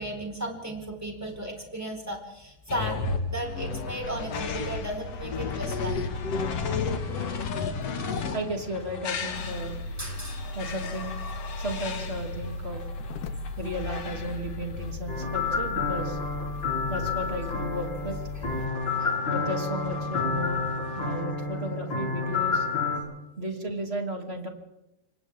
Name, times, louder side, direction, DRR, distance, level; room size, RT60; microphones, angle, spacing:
voice 1, 0.0-3.0 3.3-6.0 10.0-10.4 18.4-18.5 19.0-19.2 21.5-21.6, right 1 dB, 5° right, 1 dB, 3.9 m, -35 dB
sound 1, 2.7-21.2, left 4 dB, 50° left, 2.3 m, -35 dB
voice 2, 8.3-9.8 10.5-11.1 11.6-12.8 13.6-16.2 16.9-18.2 19.3-20.6 20.9-22.7 23.4-24.5, right 1 dB, 20° right, 3 dB, 2.1 m, -34 dB
sound 2, 9.3-18.7, left 3 dB, 85° left, 3.3 m, -38 dB
sound 3, 15.1-23.0, left 4 dB, 30° left, 4.4 m, -29 dB
29.0 x 24.5 x 3.6 m, 0.90 s
omnidirectional pair, 4.7 m